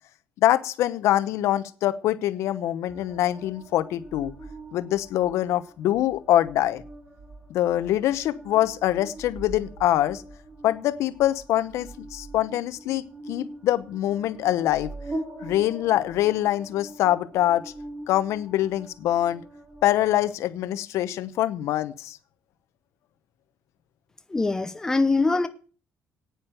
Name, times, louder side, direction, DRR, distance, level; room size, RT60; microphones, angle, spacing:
voice 1, 0.4-4.3 4.7-6.8 7.5-10.2 10.6-14.9 15.4-17.7 18.1-19.4 19.8-22.2, left 13 dB, 85° left, 0.9 m, -24 dB
sound 1, 2.9-20.3, right 1 dB, 25° right, 3.5 m, -42 dB
voice 2, 24.3-25.5, left 3 dB, 10° left, 0.9 m, -23 dB
9.3 x 9.3 x 7.9 m
cardioid pair, 160°, 5 cm